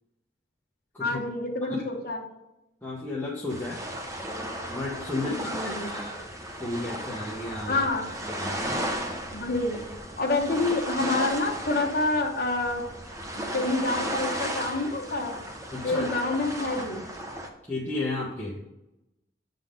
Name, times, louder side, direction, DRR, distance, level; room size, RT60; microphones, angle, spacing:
voice 1, 1.0-2.2 5.2-6.0 7.6-8.1 9.3-9.9 10.2-12.9 13.3-15.4 15.8-17.0, left 2 dB, 50° left, -1 dB, 1.1 m, -28 dB
voice 2, 2.8-3.8 4.7-6.1 6.6-7.8 8.4-8.5 15.7-16.0 17.7-18.6, left 2 dB, 10° left, -6 dB, 0.9 m, -33 dB
sound 1, 3.5-17.5, equal, 15° right, 0.8 m, -35 dB
7.8 x 3.9 x 5.1 m, 0.92 s
head